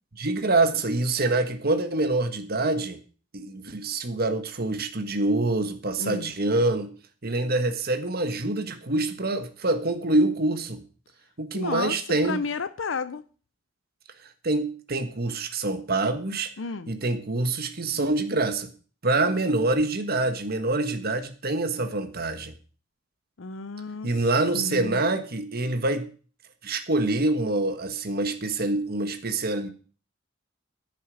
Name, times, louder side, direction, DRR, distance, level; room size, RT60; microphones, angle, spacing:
voice 1, 0.2-3.0 3.3-6.9 7.2-10.8 11.4-12.4 14.4-16.5 16.9-18.7 19.0-22.5 24.0-26.1 26.6-29.7, right 2 dB, 50° right, 1.4 m, -25 dB
voice 2, 6.0-6.3 11.5-13.2 16.6-16.9 23.4-24.3 24.5-25.0, left 4 dB, 70° left, 0.6 m, -32 dB
10.5 x 8.4 x 6.3 m
head